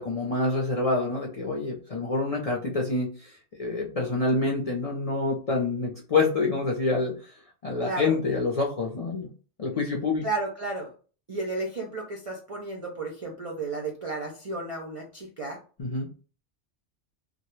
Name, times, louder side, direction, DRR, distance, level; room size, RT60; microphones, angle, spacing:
voice 1, 0.0-7.3 7.6-9.3 9.6-10.3 15.8-16.1, left 3 dB, 50° left, -2 dB, 0.4 m, -27 dB
voice 2, 7.8-8.2 10.2-10.9 11.3-15.6, right 2 dB, 50° right, -1 dB, 0.4 m, -33 dB
2.2 x 2.1 x 3.0 m, 0.38 s
omnidirectional pair, 1.2 m